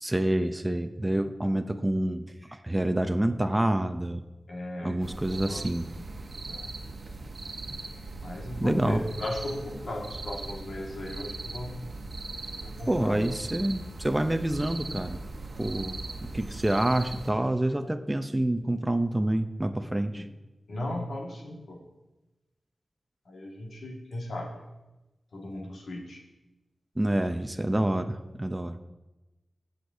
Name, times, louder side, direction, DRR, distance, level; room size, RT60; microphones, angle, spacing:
voice 1, 0.0-4.2 4.8-5.9 8.6-9.0 12.9-15.2 15.6-20.2 27.0-28.8, right 1 dB, 20° right, 7 dB, 0.5 m, -27 dB
voice 2, 4.5-5.6 6.5-6.7 8.2-11.8 12.6-13.3 20.1-20.3 20.7-21.8 23.2-24.5 25.3-26.2, left 1 dB, 85° left, -1 dB, 1.8 m, -37 dB
sound 1, 5.0-17.3, right 3 dB, 60° right, 1.0 m, -39 dB
16.5 x 6.5 x 2.7 m, 1.0 s
wide cardioid pair, 70°, 0 cm